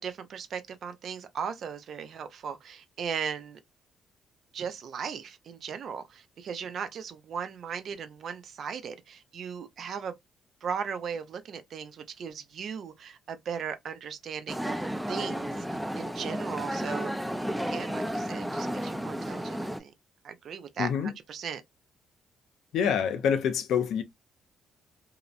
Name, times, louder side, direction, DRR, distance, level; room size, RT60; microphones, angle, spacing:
voice 1, 0.0-3.6 4.5-10.1 10.6-14.8 15.1-17.1 17.7-19.9 20.2-21.6, right 7 dB, 60° right, 0.5 m, -37 dB
sound 1, 14.5-19.8, equal, 5° right, 0.4 m, -32 dB
voice 2, 20.8-21.1 22.7-24.0, left 7 dB, 80° left, 0.5 m, -26 dB
2.8 x 2.0 x 2.4 m
cardioid pair, 90°, 0 cm